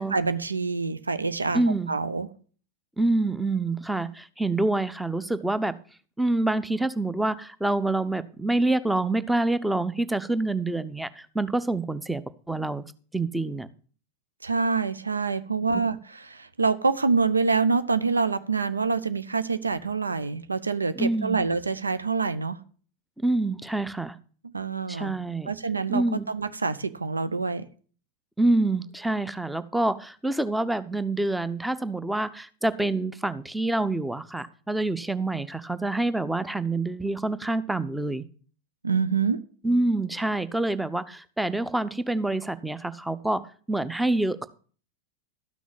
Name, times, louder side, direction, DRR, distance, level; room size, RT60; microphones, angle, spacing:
voice 1, 0.0-1.6 1.9-2.3 14.4-22.6 24.5-25.1 25.5-27.6 38.8-39.4, right 4 dB, 80° right, 13 dB, 0.6 m, -26 dB
voice 2, 1.5-1.9 3.0-5.7 6.2-12.2 12.5-12.8 13.1-13.7 21.0-21.4 23.2-24.2 24.9-25.5 25.9-26.3 28.4-38.2 39.6-44.5, right 2 dB, 5° right, 14 dB, 0.7 m, -26 dB
13.0 x 6.2 x 7.0 m, 0.42 s
figure-of-eight pair, 90°, 0 cm